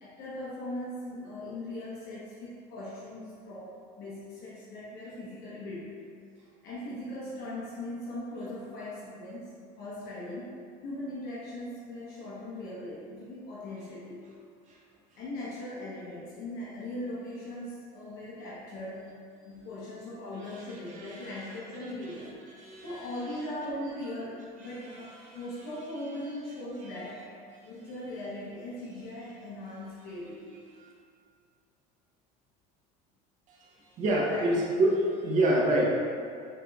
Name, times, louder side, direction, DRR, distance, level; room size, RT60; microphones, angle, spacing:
voice 1, 0.0-6.0 6.6-10.6 10.8-14.2 15.1-19.1 19.4-22.3 22.8-27.3 27.6-30.7 34.2-34.5, left 1 dB, 60° left, -7 dB, 0.9 m, -39 dB
voice 2, 21.0-21.4 22.6-22.9 25.2-25.4 30.8-30.9 34.0-35.8, right 1 dB, 40° right, -3 dB, 0.7 m, -26 dB
6.1 x 3.1 x 2.3 m, 2.4 s
cardioid pair, 150°, 19 cm